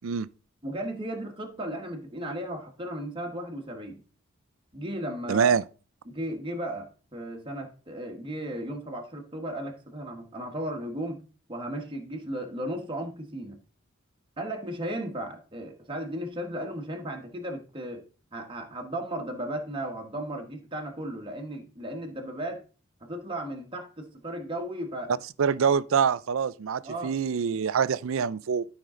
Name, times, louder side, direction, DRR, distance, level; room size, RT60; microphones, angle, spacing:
voice 1, 0.6-4.0 4.7-5.5 6.1-11.2 11.5-13.6 14.4-18.0 18.3-22.6 23.0-25.1 26.8-27.1, right 1 dB, 25° right, 1.3 m, -35 dB
voice 2, 5.3-5.6 25.4-28.7, right 6 dB, 65° right, 0.4 m, -25 dB
12.5 x 5.4 x 3.7 m
head